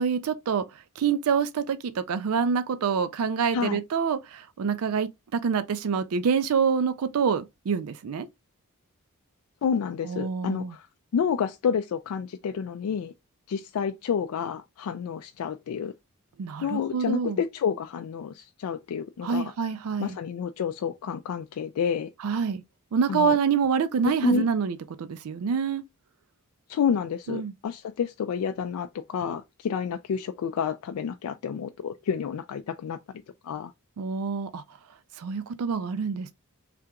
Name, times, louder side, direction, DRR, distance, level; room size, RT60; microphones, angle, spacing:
voice 1, 0.0-8.3 10.0-10.7 16.4-17.4 19.2-20.2 22.2-22.6 22.9-25.8 27.3-27.5 34.0-34.6 35.2-36.3, right 6 dB, 80° right, 0.4 m, -26 dB
voice 2, 9.6-10.9 11.1-13.1 13.5-15.9 16.6-19.5 20.0-22.1 23.1-23.4 24.0-24.5 26.7-33.0 33.4-33.7, left 6 dB, 80° left, 0.3 m, -29 dB
3.3 x 2.8 x 3.6 m
head